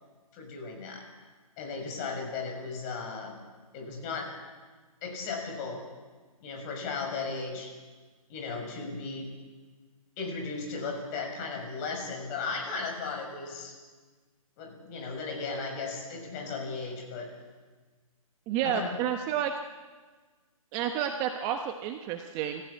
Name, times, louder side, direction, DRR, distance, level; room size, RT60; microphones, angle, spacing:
voice 1, 0.3-1.0 1.6-3.3 3.7-4.3 5.0-5.8 6.4-7.7 8.3-9.3 10.2-13.7 14.6-17.3 18.6-18.9, left 4 dB, 30° left, 2 dB, 6.5 m, -36 dB
voice 2, 18.5-19.5 20.7-22.6, right 9 dB, 20° right, 5 dB, 1.1 m, -30 dB
28.5 x 15.0 x 8.6 m, 1.4 s
hypercardioid pair, 145°, 19 cm